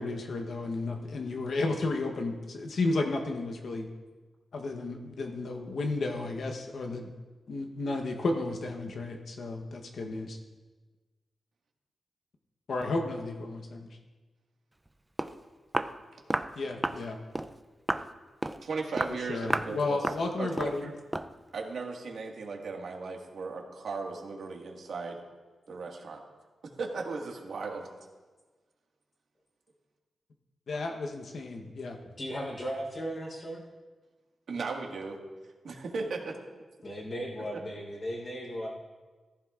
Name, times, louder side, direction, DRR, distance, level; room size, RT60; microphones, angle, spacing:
voice 1, 0.0-3.9 4.5-7.1 7.5-10.4 12.7-13.8 16.6-17.2 19.1-20.9 30.7-32.0, left 2 dB, 65° left, 3 dB, 1.0 m, -33 dB
Walk footsteps, 14.9-15.0 15.2-15.4 15.7-16.0 16.3-16.5 16.8-17.0 17.3-17.5 17.9-18.1 18.4-18.6 19.0-19.2 19.5-19.7 20.0-20.3 20.6-20.8 21.1-21.3, right 1 dB, 10° right, 0.4 m, -31 dB
voice 2, 18.6-20.0 20.4-20.9 21.5-25.2 25.7-26.2 26.8-27.9 34.5-35.2 35.6-36.4, right 4 dB, 70° right, 0 dB, 1.8 m, -36 dB
voice 3, 32.2-33.6 36.8-38.7, equal, 35° left, -2 dB, 3.9 m, -36 dB
15.0 x 14.5 x 2.5 m, 1.3 s
wide cardioid pair, 130°, 0 cm